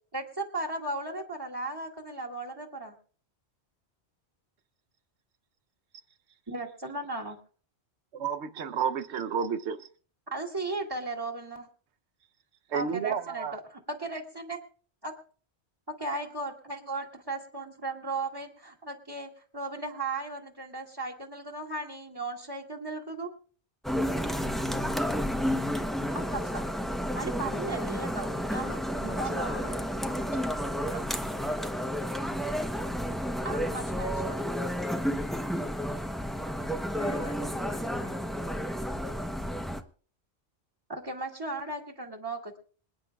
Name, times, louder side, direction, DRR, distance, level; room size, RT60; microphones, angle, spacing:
voice 1, 0.1-2.9 6.5-7.4 10.3-11.7 12.7-14.6 15.0-15.1 16.0-23.3 26.3-26.7 27.1-28.7 29.2-29.6 33.4-34.6 40.9-42.6, right 2 dB, 20° right, 2.1 m, -36 dB
voice 2, 8.1-9.9 12.7-13.6, right 7 dB, 85° right, 1.1 m, -31 dB
sound 1, 23.8-39.8, equal, ahead, 0.7 m, -31 dB
voice 3, 28.6-31.3 37.0-38.3, left 2 dB, 40° left, 1.9 m, -44 dB
27.0 x 9.9 x 2.4 m
omnidirectional pair, 1.1 m